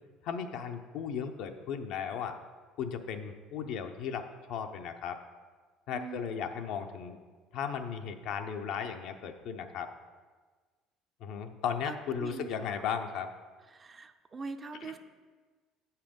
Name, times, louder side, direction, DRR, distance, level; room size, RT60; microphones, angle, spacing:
voice 1, 0.2-2.3 2.8-4.2 4.5-5.2 5.9-7.2 7.5-9.9 11.2-13.3 14.8-14.9, left 7 dB, 70° left, 6 dB, 0.7 m, -36 dB
voice 2, 5.9-6.3 11.9-12.0 12.2-12.7 13.8-15.0, right 4 dB, 30° right, 8 dB, 0.6 m, -42 dB
7.7 x 5.6 x 5.2 m, 1.4 s
supercardioid pair, 85°, 0 cm